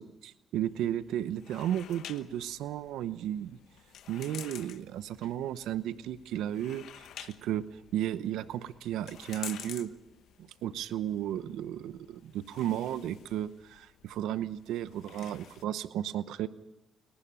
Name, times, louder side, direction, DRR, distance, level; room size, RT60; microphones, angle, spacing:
voice 1, 0.2-3.6 4.1-7.6 7.9-9.9 10.4-16.5, right 11 dB, 85° right, 14 dB, 0.8 m, -34 dB
sound 1, 0.6-15.6, left 10 dB, 75° left, 1.0 m, -50 dB
29.5 x 11.5 x 8.9 m, 1.0 s
cardioid pair, 90°, 0 cm